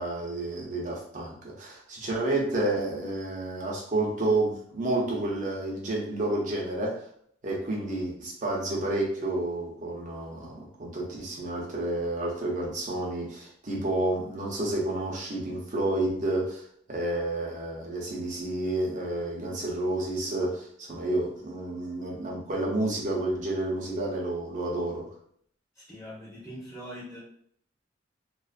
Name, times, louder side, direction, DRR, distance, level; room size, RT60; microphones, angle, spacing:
voice 1, 0.0-7.0 7.4-16.6 16.9-25.1, right 2 dB, 45° right, -2 dB, 0.7 m, -30 dB
voice 2, 25.7-27.2, equal, 15° left, -6 dB, 0.7 m, -42 dB
2.4 x 2.4 x 2.4 m, 0.65 s
head